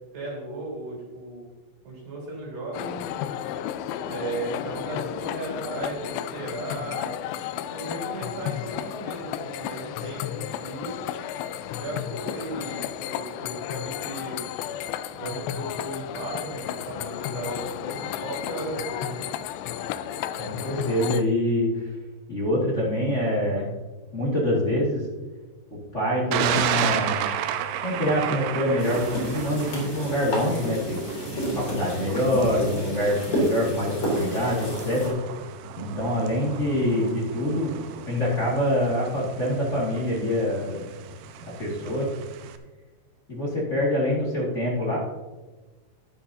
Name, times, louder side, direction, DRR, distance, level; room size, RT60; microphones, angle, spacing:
voice 1, 0.0-1.5 1.8-3.0 4.1-7.2 7.7-11.1 11.8-14.5 15.1-19.2, right 2 dB, 65° right, -4 dB, 6.1 m, -36 dB
sound 1, 2.7-21.2, left 11 dB, 90° left, 2.4 m, -33 dB
voice 2, 20.4-21.9 22.3-23.7 24.1-25.0 25.9-27.3 27.8-31.0 31.5-35.1 35.7-37.8 38.1-40.8 41.6-42.1 43.3-45.0, left 1 dB, 60° left, -6 dB, 0.7 m, -25 dB
Thunder, 26.3-42.6, right 9 dB, 85° right, 2.5 m, -33 dB
sound 2, 28.8-35.1, equal, 30° left, 2.9 m, -30 dB
12.5 x 10.5 x 2.8 m, 1.2 s
omnidirectional pair, 5.3 m